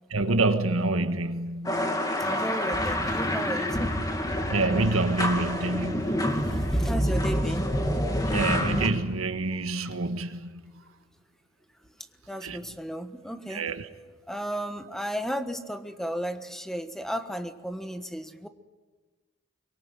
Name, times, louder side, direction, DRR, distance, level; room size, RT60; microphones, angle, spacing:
voice 1, 0.1-2.0 4.5-6.2 8.3-10.5 12.4-12.6 13.5-13.8, right 2 dB, 85° right, 1.7 m, -27 dB
sound 1, 1.6-8.9, equal, 15° left, 2.7 m, -27 dB
voice 2, 2.2-3.9 6.7-7.7 12.3-13.6 14.3-18.5, equal, ahead, 1.3 m, -34 dB
24.5 x 23.0 x 9.1 m
head